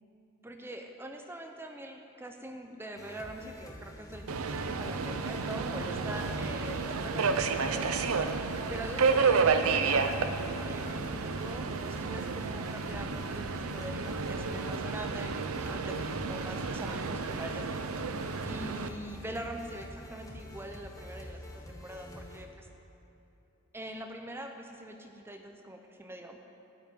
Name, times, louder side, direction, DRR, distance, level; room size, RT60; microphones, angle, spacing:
voice 1, 0.4-8.0 8.7-10.2 10.6-17.8 18.4-22.7 23.7-26.4, right 1 dB, 10° right, 4 dB, 0.6 m, -43 dB
sound 1, 3.0-22.4, left 1 dB, 15° left, 1.0 m, -47 dB
Subway metro underground, 4.3-18.9, right 4 dB, 75° right, 0.6 m, -31 dB
13.0 x 5.8 x 9.3 m, 2.9 s
head